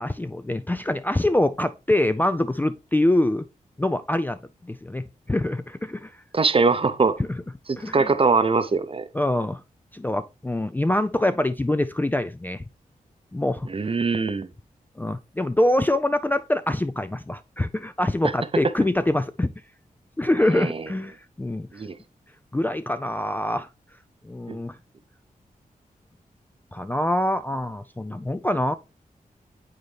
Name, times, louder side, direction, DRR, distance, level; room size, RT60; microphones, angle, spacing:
voice 1, 0.0-3.4 3.8-6.1 7.2-7.4 7.8-8.1 9.1-9.6 9.9-12.6 13.3-13.7 15.0-19.5 20.2-21.7 22.5-23.7 24.2-24.8 26.7-28.7, left 1 dB, 10° left, 0.3 m, -24 dB
voice 2, 6.3-7.2 7.7-9.1 13.7-14.5 20.6-20.8 21.7-22.0 24.5-24.6, right 4 dB, 40° right, 0.6 m, -22 dB
9.0 x 4.0 x 3.3 m
wide cardioid pair, 75°, 15 cm